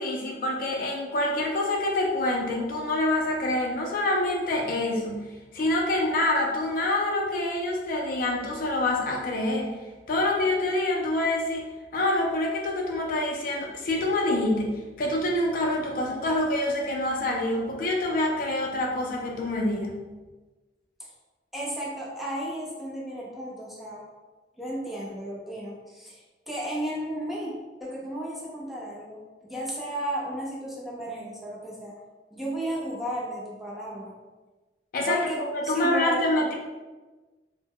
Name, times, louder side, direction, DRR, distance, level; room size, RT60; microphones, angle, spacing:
voice 1, 0.0-9.7 10.1-20.0 34.9-36.5, left 1 dB, 50° left, 0 dB, 0.4 m, -26 dB
voice 2, 21.5-24.0 24.6-27.5 27.8-31.9 32.3-34.1 35.1-36.5, right 1 dB, ahead, -6 dB, 0.5 m, -34 dB
2.1 x 2.0 x 3.5 m, 1.2 s
head